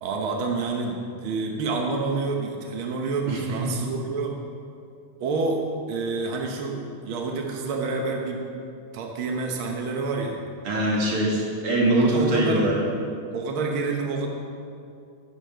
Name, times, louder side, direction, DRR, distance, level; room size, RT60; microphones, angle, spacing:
voice 1, 0.0-4.3 5.2-5.6 5.9-6.8 7.0-8.4 8.9-10.4 11.9-12.7 13.3-14.3, right 3 dB, 75° right, 1 dB, 1.2 m, -28 dB
voice 2, 3.3-3.7 10.6-12.8, right 1 dB, 45° right, -3 dB, 2.7 m, -23 dB
11.5 x 10.0 x 5.6 m, 2.4 s
omnidirectional pair, 3.8 m